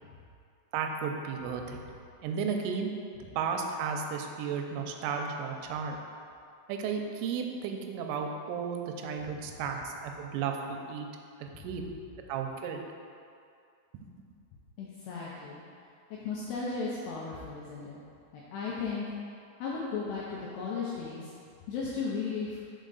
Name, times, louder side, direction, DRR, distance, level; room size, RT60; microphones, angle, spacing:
voice 1, 0.7-1.8 2.2-2.9 3.4-6.0 6.7-11.1 11.4-11.9 12.3-12.8, right 6 dB, 90° right, 3 dB, 3.1 m, -34 dB
voice 2, 14.8-15.6 16.2-18.0 18.3-19.1 19.6-21.3 21.7-22.6, left 4 dB, 85° left, -6 dB, 2.4 m, -35 dB
6.4 x 4.6 x 3.9 m, 2.4 s
omnidirectional pair, 5.5 m